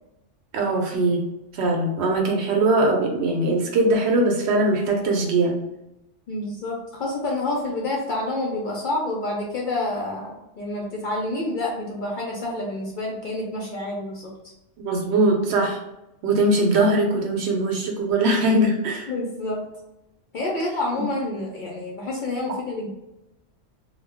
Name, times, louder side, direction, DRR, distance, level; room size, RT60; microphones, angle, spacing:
voice 1, 0.5-1.2 1.5-5.6 14.8-15.8 16.2-19.1, right 2 dB, 70° right, 1 dB, 0.8 m, -21 dB
voice 2, 6.3-14.3 19.1-19.6 20.3-22.9, left 2 dB, 55° left, -2 dB, 0.6 m, -28 dB
2.2 x 2.1 x 3.4 m, 0.92 s
omnidirectional pair, 1.2 m